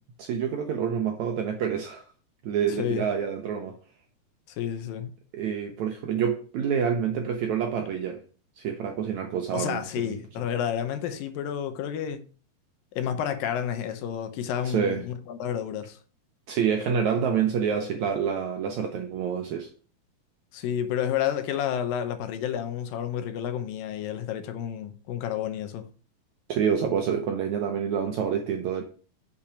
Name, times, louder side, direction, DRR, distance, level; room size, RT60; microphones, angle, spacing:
voice 1, 0.2-2.0 2.4-3.8 5.3-8.2 8.6-10.2 14.6-15.0 16.5-19.7 26.5-28.8, right 7 dB, 80° right, 1.7 m, -27 dB
voice 2, 4.6-5.1 9.5-12.2 13.0-16.0 20.5-25.8, left 9 dB, 75° left, 2.4 m, -30 dB
6.9 x 5.6 x 5.0 m
omnidirectional pair, 4.3 m